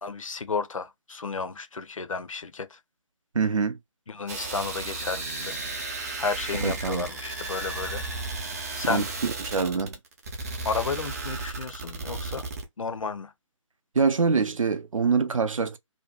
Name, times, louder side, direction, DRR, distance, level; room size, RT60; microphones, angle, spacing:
voice 1, 0.0-2.8 4.1-5.5 6.2-8.1 8.7-9.1 10.6-12.5 12.8-13.3, left 4 dB, 75° left, 0.5 m, -32 dB
voice 2, 3.3-3.8 6.6-7.1 8.9-9.9 13.9-15.8, right 5 dB, 75° right, 0.5 m, -25 dB
sound 1, 4.3-12.7, right 3 dB, 30° right, 0.6 m, -34 dB
2.6 x 2.1 x 2.3 m
figure-of-eight pair, 145°, 17 cm